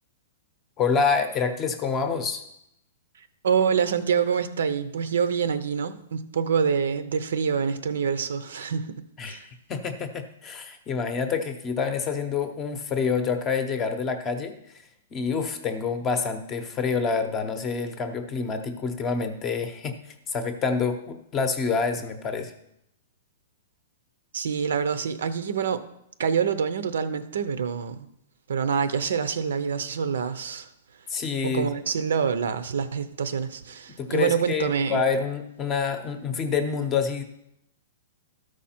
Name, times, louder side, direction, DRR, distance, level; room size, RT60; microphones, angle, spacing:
voice 1, 0.8-2.4 9.2-14.6 15.1-22.5 31.1-31.8 34.0-37.2, left 5 dB, 20° left, 8 dB, 0.7 m, -27 dB
voice 2, 3.4-9.4 24.3-25.8 26.2-28.1 28.5-30.7 31.4-35.0, right 6 dB, 85° right, 12 dB, 0.7 m, -26 dB
13.0 x 4.9 x 4.3 m, 0.79 s
hypercardioid pair, 165°, 0 cm